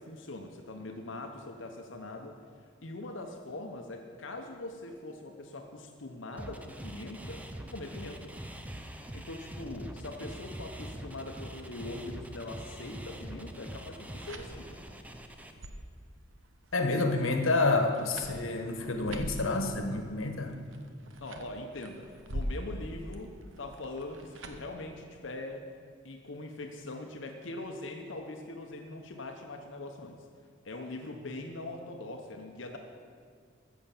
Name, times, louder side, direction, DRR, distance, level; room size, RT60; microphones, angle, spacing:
voice 1, 0.0-2.3 2.8-7.4 7.7-8.2 9.1-14.8 21.2-23.3 23.6-25.6 26.0-30.2 30.6-32.8, left 2 dB, 70° left, 3 dB, 0.9 m, -42 dB
sound 1, 6.4-15.5, right 1 dB, 5° right, 0.6 m, -43 dB
sound 2, 14.1-24.8, equal, 80° right, 1.1 m, -44 dB
voice 2, 16.7-20.6, left 3 dB, 90° left, 5 dB, 1.3 m, -28 dB
14.5 x 7.1 x 7.1 m, 2.1 s
head